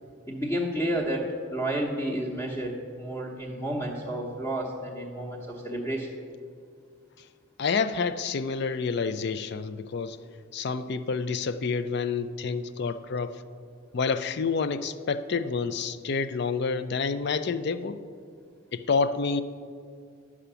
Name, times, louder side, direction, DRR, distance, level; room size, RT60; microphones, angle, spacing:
voice 1, 0.3-6.1, right 1 dB, 15° left, -5 dB, 1.0 m, -31 dB
voice 2, 7.6-10.2 10.5-13.4 13.9-18.0 18.7-19.4, left 5 dB, 50° left, 13 dB, 0.4 m, -28 dB
11.5 x 4.9 x 6.8 m, 2.3 s
head